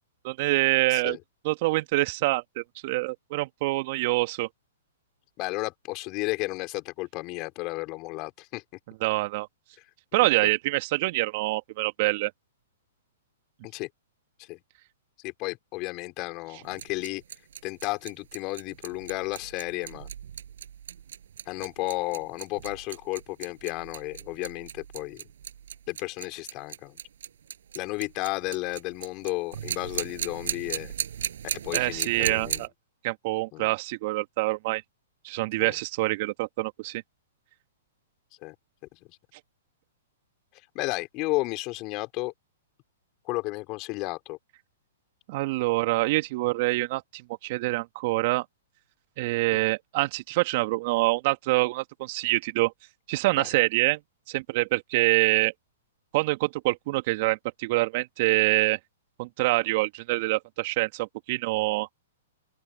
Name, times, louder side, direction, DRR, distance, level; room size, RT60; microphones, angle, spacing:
voice 1, 0.2-1.2 1.4-4.5 9.0-9.5 10.1-12.3 31.7-32.7 33.0-34.8 35.2-37.0 45.3-48.5 49.2-52.7 53.1-54.0 54.3-55.5 56.1-58.8 59.2-61.9, right 21 dB, 50° right, 2.0 m, -26 dB
voice 2, 5.4-8.6 9.8-9.9 10.4-10.5 13.6-13.9 14.4-14.6 15.2-17.2 17.6-20.1 21.5-25.3 25.9-27.0 27.7-30.9 31.6-32.7 33.5-33.7 35.6-35.8 38.4-38.6 38.9-39.2 40.5-42.3 43.2-44.4 49.5-49.6 53.3-53.5, left 23 dB, 35° left, 3.9 m, -33 dB
sound 1, 16.6-32.7, right 9 dB, 70° right, 5.3 m, -37 dB
open air
hypercardioid pair, 115°, 0 cm